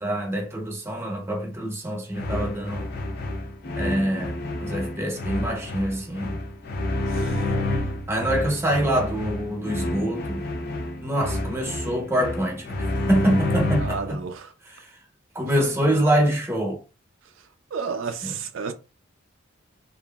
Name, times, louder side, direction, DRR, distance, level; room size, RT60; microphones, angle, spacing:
voice 1, 0.0-2.9 3.8-6.4 8.1-10.4 11.0-14.2 14.6-15.0 15.3-16.8 18.2-18.3, right 1 dB, 10° right, 0.7 m, -25 dB
sound 1, 2.1-14.2, left 1 dB, 50° left, 0.4 m, -29 dB
voice 2, 7.1-7.4 13.8-14.5 15.7-15.8 17.7-18.7, right 5 dB, 75° right, 0.4 m, -32 dB
2.9 x 2.5 x 2.2 m
head